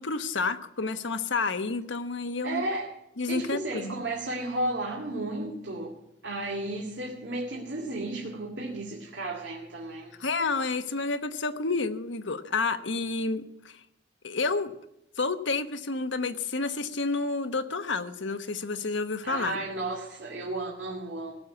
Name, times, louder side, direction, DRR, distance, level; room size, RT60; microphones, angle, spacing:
voice 1, 0.0-2.6 3.2-4.0 10.2-13.8 14.2-14.7 15.2-19.6, left 3 dB, 90° left, 8 dB, 1.1 m, -30 dB
voice 2, 2.4-2.9 3.3-5.9 6.2-10.1 19.2-21.3, right 2 dB, 70° right, -1 dB, 2.3 m, -33 dB
18.0 x 7.3 x 9.4 m, 0.84 s
head